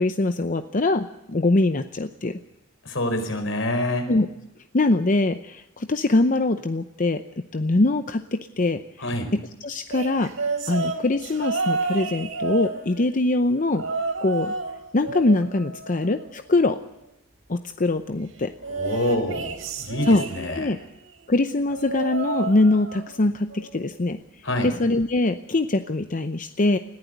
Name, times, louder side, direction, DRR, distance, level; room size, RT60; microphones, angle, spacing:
voice 1, 0.0-2.4 4.1-4.3 4.7-7.2 7.5-10.3 10.7-13.8 14.2-14.5 14.9-16.8 17.5-18.5 20.0-20.8 21.3-24.2 24.6-26.8, left 2 dB, 40° left, 9 dB, 0.7 m, -23 dB
voice 2, 2.8-4.1 9.0-9.3 18.7-20.7 24.4-24.7, left 1 dB, 75° left, 6 dB, 4.7 m, -27 dB
sound 1, 9.9-13.2 13.7-14.7 15.0-16.6 18.6-20.8 21.7-23.2 23.5-23.9 25.0-25.1, right 4 dB, 85° right, 3.9 m, -30 dB
20.5 x 15.0 x 9.4 m, 0.92 s
head